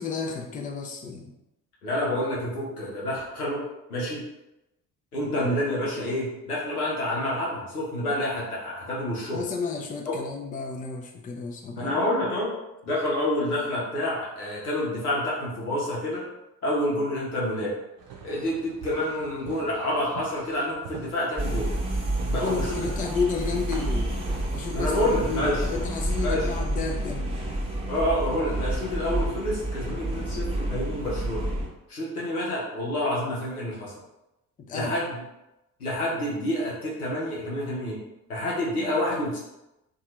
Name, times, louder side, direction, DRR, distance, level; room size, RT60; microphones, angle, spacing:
voice 1, 0.0-1.3 5.4-5.5 9.3-11.9 22.3-24.1 24.5-27.4 34.6-35.0, left 5 dB, 20° left, 2 dB, 0.4 m, -32 dB
voice 2, 1.8-3.6 3.9-4.2 5.1-9.4 11.8-12.5 12.8-16.2 16.6-17.7 18.2-21.7 22.2-22.8 24.7-25.6 26.2-26.5 27.9-31.4 31.9-33.9 34.7-35.2 35.8-38.0 38.3-39.4, left 1 dB, 90° left, -5 dB, 0.7 m, -28 dB
sound 1, 18.0-29.1, right 6 dB, 55° right, 0.7 m, -46 dB
sound 2, 21.4-31.7, right 1 dB, 15° right, 0.8 m, -29 dB
2.7 x 2.3 x 3.0 m, 0.93 s
figure-of-eight pair, 40°, 43 cm